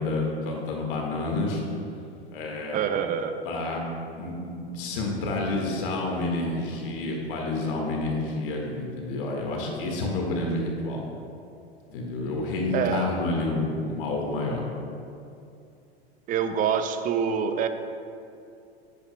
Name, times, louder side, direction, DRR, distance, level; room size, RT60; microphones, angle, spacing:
voice 1, 0.0-1.6 2.3-2.8 3.4-3.9 4.2-11.0 11.9-14.6, left 2 dB, 55° left, 0 dB, 1.8 m, -29 dB
voice 2, 2.7-3.4 12.7-13.1 16.3-17.7, right 7 dB, 25° right, 8 dB, 0.5 m, -26 dB
10.5 x 8.9 x 2.3 m, 2.5 s
figure-of-eight pair, 90°, 32 cm